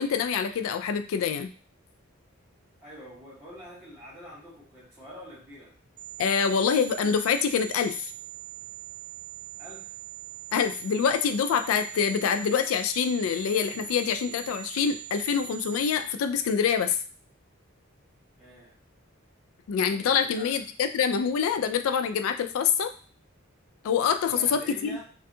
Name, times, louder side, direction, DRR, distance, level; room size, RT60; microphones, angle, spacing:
voice 1, 0.0-1.5 6.2-8.1 10.5-17.0 19.7-22.9 23.8-25.0, left 7 dB, 80° left, 9 dB, 0.3 m, -25 dB
voice 2, 2.8-5.7 9.6-9.9 18.4-18.7 20.1-20.6 24.2-25.0, equal, 10° right, -10 dB, 1.1 m, -45 dB
sound 1, 6.0-16.0, right 16 dB, 40° right, 0.4 m, -42 dB
2.5 x 2.3 x 2.6 m, 0.39 s
head